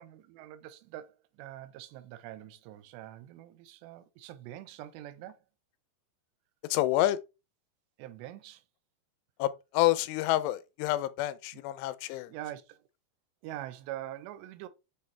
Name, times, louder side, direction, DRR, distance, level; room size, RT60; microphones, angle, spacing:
voice 1, 0.0-5.4 8.0-8.6 11.5-11.6 12.3-12.8 13.4-14.7, right 13 dB, 90° right, 2.9 m, -44 dB
voice 2, 6.7-7.2 9.4-12.3, left 15 dB, 90° left, 2.8 m, -28 dB
8.4 x 3.8 x 3.2 m
omnidirectional pair, 4.8 m